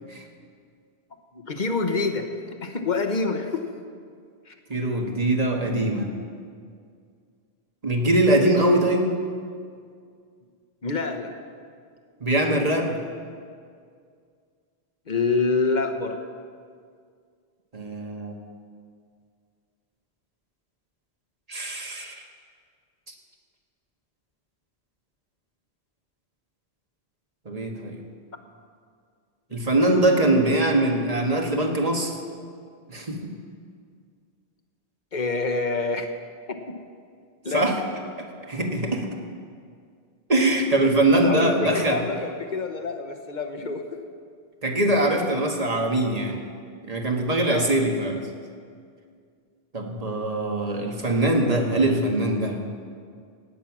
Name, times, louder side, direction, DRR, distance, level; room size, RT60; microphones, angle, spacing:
voice 1, 1.3-3.6 4.5-4.6 10.8-11.3 15.1-16.2 35.1-36.1 36.5-36.7 37.4-37.7 40.5-43.8 47.5-47.8, left 3 dB, 45° left, 6 dB, 1.2 m, -27 dB
voice 2, 4.7-6.1 7.8-9.1 12.2-12.9 17.7-18.3 21.5-22.1 27.4-28.0 29.5-32.2 32.9-33.3 37.5-37.7 38.5-39.1 40.3-42.0 44.6-46.4 46.8-48.2 49.7-52.6, right 1 dB, 35° right, 2 dB, 1.6 m, -22 dB
17.5 x 9.2 x 6.1 m, 2.2 s
omnidirectional pair, 1.1 m